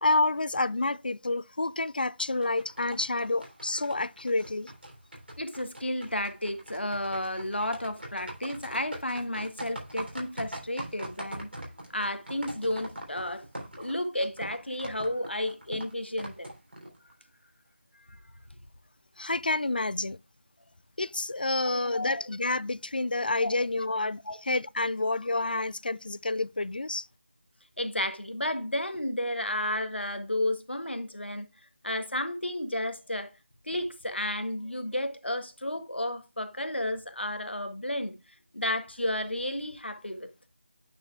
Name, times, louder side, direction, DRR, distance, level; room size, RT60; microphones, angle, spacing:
voice 1, 0.0-4.7 19.2-20.2 21.0-24.2 24.5-27.1, left 2 dB, 55° left, 0.4 m, -29 dB
sound 1, 2.2-17.1, right 1 dB, 65° right, 3.5 m, -43 dB
voice 2, 5.4-11.5 11.9-13.4 13.8-16.5 18.1-18.2 21.7-22.2 23.4-23.5 24.2-24.4 27.8-31.4 31.8-33.3 33.6-38.1 38.5-40.3, left 1 dB, 75° left, 1.6 m, -32 dB
9.0 x 4.7 x 3.4 m
figure-of-eight pair, 165°, 6 cm